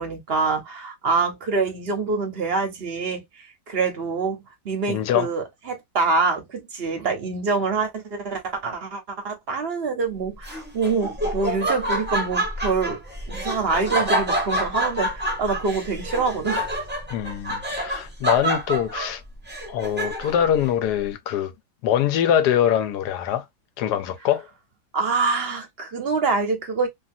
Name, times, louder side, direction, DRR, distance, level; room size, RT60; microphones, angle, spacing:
voice 1, 0.0-3.2 3.7-4.4 4.6-13.0 13.3-16.7 24.9-26.9, right 4 dB, 50° right, 0.8 m, -25 dB
voice 2, 4.9-5.3 17.1-19.2 19.7-21.5 21.8-23.5 23.8-24.5, left 10 dB, 75° left, 1.2 m, -23 dB
Laughter, 10.4-20.5, right 1 dB, 10° right, 0.6 m, -27 dB
2.7 x 2.7 x 2.5 m
omnidirectional pair, 1.8 m